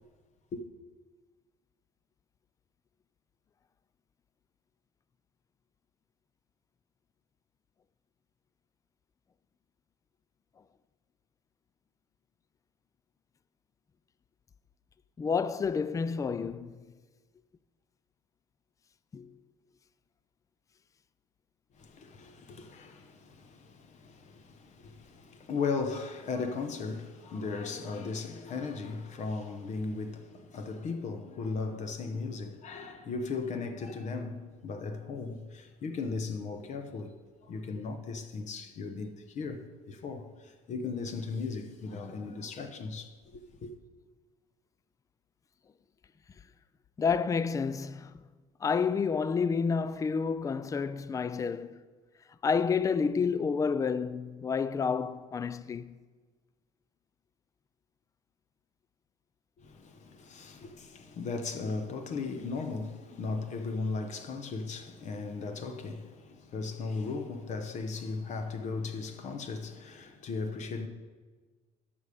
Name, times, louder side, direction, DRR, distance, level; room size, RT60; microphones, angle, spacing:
voice 1, 15.2-16.8 19.1-19.5 47.0-48.2 48.6-51.8 52.4-55.9, left 5 dB, 20° left, 0.4 m, -29 dB
voice 2, 21.8-37.1 37.4-43.7 59.6-70.9, left 4 dB, 50° left, 1.0 m, -37 dB
13.5 x 5.4 x 5.0 m
supercardioid pair, 80°, 15 cm